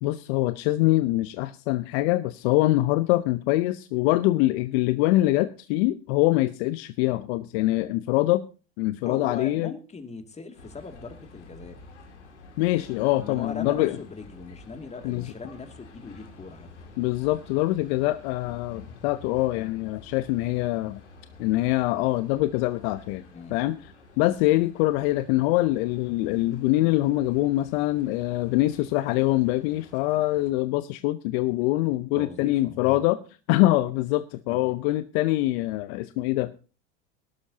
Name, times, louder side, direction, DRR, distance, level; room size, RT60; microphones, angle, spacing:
voice 1, 0.0-8.5 8.8-9.7 12.6-14.0 15.0-15.3 17.0-21.0 21.4-23.2 23.5-33.2 33.5-36.5, left 17 dB, 60° left, 13 dB, 0.8 m, -24 dB
voice 2, 9.0-11.8 13.2-16.7 23.3-23.6 32.1-32.9 34.6-34.7, left 4 dB, 20° left, 7 dB, 2.5 m, -39 dB
sound 1, 10.5-30.5, left 3 dB, 90° left, 2.5 m, -49 dB
19.0 x 12.0 x 2.8 m, 0.34 s
hypercardioid pair, 85°, 34 cm